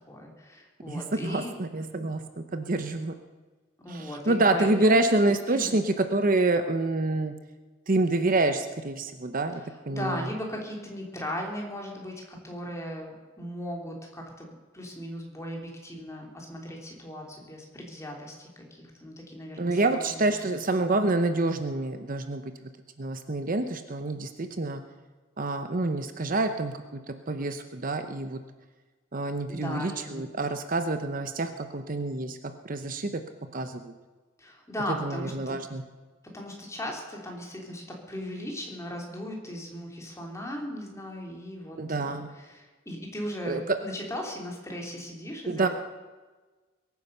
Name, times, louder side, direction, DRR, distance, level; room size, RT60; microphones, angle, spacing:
voice 1, 0.1-1.5 3.8-5.0 5.5-5.8 9.9-14.5 14.7-20.5 29.5-30.2 34.4-35.6 36.3-45.7, equal, 15° left, 0 dB, 3.3 m, -37 dB
voice 2, 0.9-3.1 3.9-7.3 7.9-10.3 19.6-22.7 23.0-24.8 25.4-28.4 29.1-32.4 32.6-33.2 33.5-33.9 34.9-35.8 41.8-42.3 43.4-43.8 45.5-45.7, right 2 dB, 45° right, 9 dB, 0.8 m, -27 dB
22.5 x 9.6 x 6.8 m, 1.3 s
head